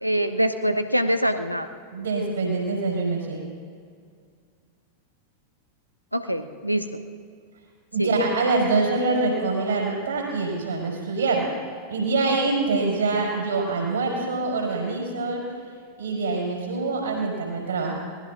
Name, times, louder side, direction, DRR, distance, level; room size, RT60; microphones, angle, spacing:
voice 1, 0.0-1.7 6.1-7.0 8.0-8.1, right 1 dB, 90° right, 9 dB, 0.8 m, -24 dB
voice 2, 1.9-3.4 7.9-11.5 11.9-15.4 16.0-17.9, right 3 dB, 70° right, -2 dB, 5.3 m, -25 dB
25.0 x 19.5 x 2.6 m, 2.2 s
figure-of-eight pair, 90°, 0 cm